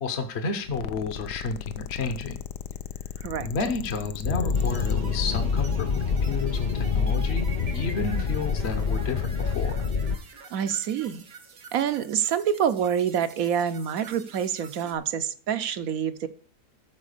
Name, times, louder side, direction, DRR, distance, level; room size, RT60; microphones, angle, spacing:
voice 1, 0.0-2.4 3.4-9.7, left 4 dB, 45° left, 6 dB, 1.1 m, -31 dB
sound 1, 0.6-5.0, left 10 dB, 90° left, 1.3 m, -37 dB
sound 2, 4.2-10.2, left 5 dB, 65° left, 0.4 m, -26 dB
sound 3, 4.5-15.0, right 4 dB, 85° right, 2.1 m, -45 dB
voice 2, 10.5-11.2 11.7-16.3, right 8 dB, 65° right, 12 dB, 1.0 m, -27 dB
13.0 x 4.6 x 6.6 m, 0.44 s
omnidirectional pair, 1.7 m